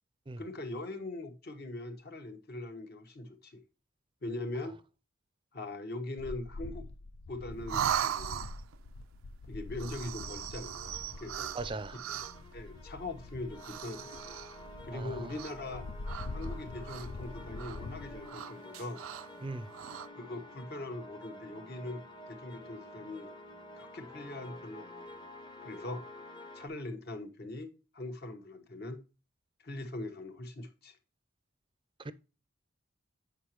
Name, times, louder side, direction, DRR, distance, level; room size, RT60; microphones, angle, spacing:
voice 1, 0.4-3.6 4.2-4.7 5.5-6.9 7.3-8.4 9.5-11.5 12.1-14.4 14.8-15.8 16.3-19.0 20.2-23.3 23.7-25.2 25.6-26.1 26.5-29.0 29.6-31.0, left 2 dB, 50° left, 1.2 m, -41 dB
sound 1, 6.2-18.3, left 2 dB, 75° left, 0.5 m, -45 dB
sound 2, 7.7-8.8 9.7-12.5 13.5-14.7 15.3-15.7 16.0-17.2 17.5-17.8 18.2-19.3 19.7-20.1, right 9 dB, 85° right, 0.4 m, -38 dB
sound 3, 10.1-26.7, left 1 dB, 20° left, 0.8 m, -50 dB
voice 2, 11.5-12.0 14.9-15.2 19.4-19.7 32.0-32.1, right 3 dB, 25° right, 0.5 m, -38 dB
8.2 x 5.0 x 2.9 m
head